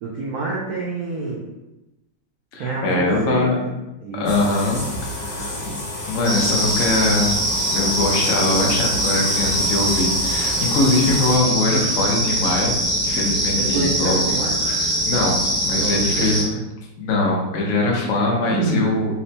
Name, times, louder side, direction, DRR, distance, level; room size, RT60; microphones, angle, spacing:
voice 1, 0.0-1.4 2.6-3.7 4.0-4.3 5.2-5.7 13.6-14.6 15.7-16.6 18.5-19.0, right 3 dB, 85° right, -4 dB, 0.8 m, -27 dB
voice 2, 2.5-3.6 4.1-4.8 5.1-5.7 6.1-7.4 7.7-12.7 13.0-14.2 14.6-16.4 17.0-19.2, left 2 dB, 85° left, -2 dB, 0.6 m, -22 dB
sound 1, 4.3-11.4, left 1 dB, 65° left, 1.6 m, -31 dB
sound 2, 6.2-16.4, right 1 dB, 55° right, 1.4 m, -22 dB
4.2 x 2.1 x 2.7 m, 0.98 s
omnidirectional pair, 2.2 m